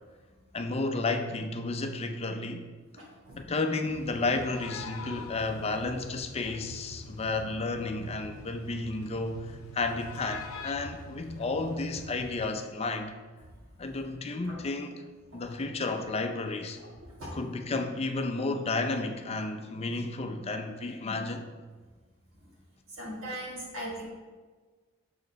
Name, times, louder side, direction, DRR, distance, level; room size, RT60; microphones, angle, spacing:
voice 1, 0.5-2.7 3.4-13.2 13.8-15.0 15.3-16.8 17.3-21.5, left 3 dB, 30° left, 7 dB, 0.5 m, -32 dB
voice 2, 3.0-3.4 14.4-14.6 17.0-17.4 22.9-24.0, right 1 dB, 70° right, -5 dB, 2.1 m, -39 dB
sound 1, 3.9-12.4, left 3 dB, 75° left, 0.6 m, -44 dB
6.4 x 4.7 x 5.2 m, 1.4 s
head